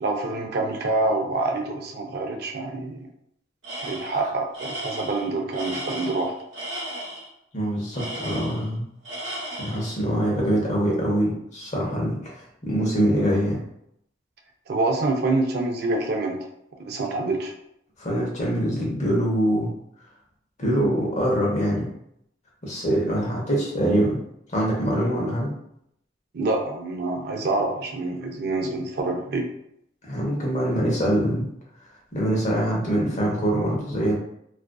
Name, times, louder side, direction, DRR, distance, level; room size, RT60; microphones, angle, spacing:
voice 1, 0.0-3.1 3.8-6.3 14.7-16.4 16.8-17.5 26.3-29.5, right 2 dB, 55° right, 2 dB, 0.4 m, -26 dB
Tools, 3.6-4.2 4.5-7.3 7.9-8.8 9.0-9.9, right 1 dB, 85° right, 0.9 m, -35 dB
voice 2, 7.5-8.8 9.6-13.6 18.0-19.7 20.6-21.9 22.6-24.2 24.5-25.5 30.1-31.5 32.1-34.1, equal, 40° left, -4 dB, 0.8 m, -24 dB
2.4 x 2.3 x 2.2 m, 0.75 s
head